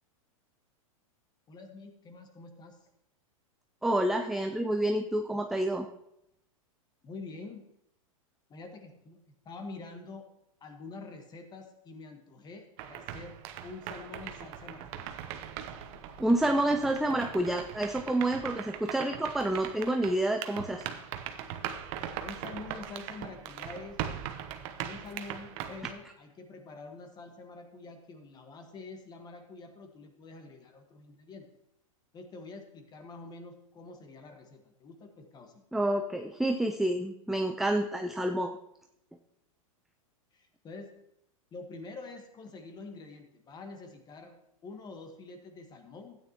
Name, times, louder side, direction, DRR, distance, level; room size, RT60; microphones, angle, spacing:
voice 1, 1.5-2.8 7.0-7.6 8.5-10.3 10.6-13.3 13.6-15.1 22.2-24.0 24.6-31.5 32.1-35.6 40.3-41.0 41.5-44.4 44.6-46.2, left 3 dB, 25° left, 5 dB, 1.5 m, -46 dB
voice 2, 3.8-5.9 16.2-20.8 35.7-38.6, right 1 dB, ahead, 4 dB, 0.4 m, -28 dB
sound 1, 12.8-25.9, right 10 dB, 45° right, 0.9 m, -40 dB
13.0 x 9.2 x 3.0 m, 0.80 s
hypercardioid pair, 120°, 18 cm